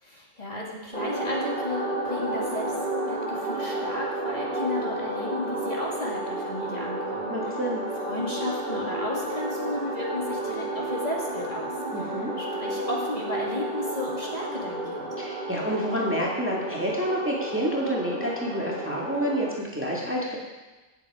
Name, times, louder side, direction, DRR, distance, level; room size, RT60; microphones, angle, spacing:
voice 1, 0.0-2.6 3.1-7.6 8.1-11.7 11.9-15.1, left 2 dB, 35° left, -4 dB, 2.5 m, -34 dB
sound 1, 0.9-19.5, right 1 dB, 45° right, 3.9 m, -31 dB
voice 2, 7.3-7.8 11.9-12.3 15.2-20.4, equal, 10° right, -4 dB, 2.1 m, -28 dB
17.5 x 8.1 x 4.9 m, 1.2 s
omnidirectional pair, 1.2 m